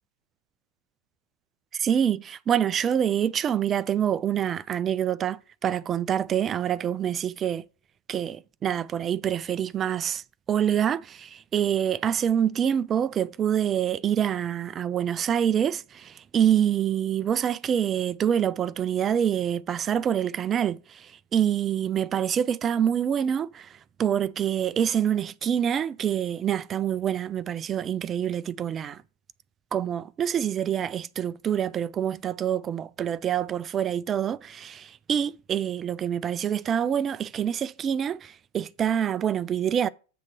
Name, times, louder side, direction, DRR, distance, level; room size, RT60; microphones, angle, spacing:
voice 1, 1.7-7.6 8.1-10.2 10.5-23.7 24.0-29.0 29.7-39.9, right 9 dB, 25° right, 0.3 m, -26 dB
7.6 x 3.6 x 6.0 m
figure-of-eight pair, 90°, 0 cm